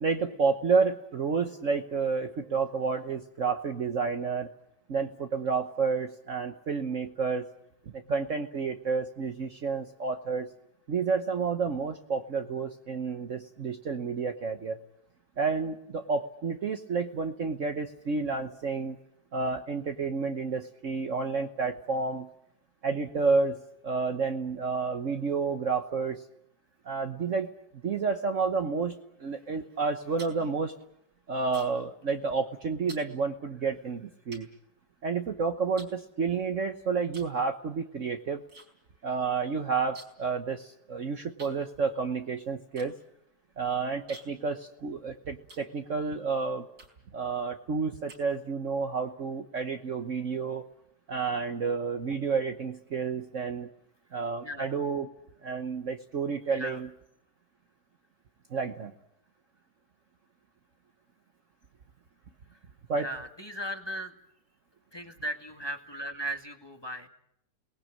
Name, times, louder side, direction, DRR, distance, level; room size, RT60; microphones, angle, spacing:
voice 1, 0.0-4.5 4.9-7.4 7.9-10.5 10.9-14.8 15.4-19.0 19.3-22.3 22.8-26.2 26.8-27.5 27.8-30.7 31.3-34.5 35.0-38.4 39.0-42.9 43.6-46.6 47.1-50.6 51.1-53.7 54.1-55.1 55.4-56.9 58.5-58.9 62.9-63.1, right 4 dB, 50° right, 6 dB, 1.3 m, -30 dB
sound 1, 29.8-31.9 32.2-32.5 32.9-33.1 33.7-33.8 34.3-35.3 35.8-36.6 37.1-37.4 37.7-38.7 38.9-39.0 39.3-40.3 40.6-40.7 41.4-46.2 46.7-47.2 47.6-48.7, right 2 dB, 75° right, 5.4 m, -51 dB
voice 2, 54.4-54.8 56.5-56.8 63.0-64.1 64.9-67.1, right 1 dB, 15° left, 4 dB, 1.8 m, -37 dB
28.0 x 19.5 x 7.5 m, 0.77 s
omnidirectional pair, 2.0 m